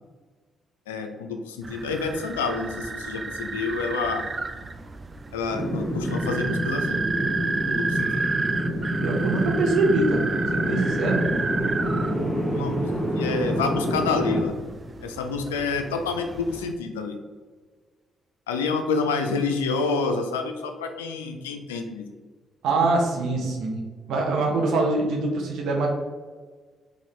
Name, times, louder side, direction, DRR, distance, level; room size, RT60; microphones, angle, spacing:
voice 1, 0.9-4.2 5.3-7.0 7.4-8.2 12.5-12.8 13.2-14.5 15.0-17.2 18.5-22.1, left 4 dB, 90° left, 5 dB, 0.3 m, -28 dB
sound 1, 1.6-16.7, right 3 dB, 35° right, 0.3 m, -32 dB
sound 2, 5.5-14.4, equal, ahead, 0.8 m, -27 dB
voice 2, 9.0-11.2 22.6-23.8 24.1-25.9, right 3 dB, 70° right, 1 dB, 0.7 m, -24 dB
4.0 x 2.5 x 3.1 m, 1.5 s
hypercardioid pair, 45°, 0 cm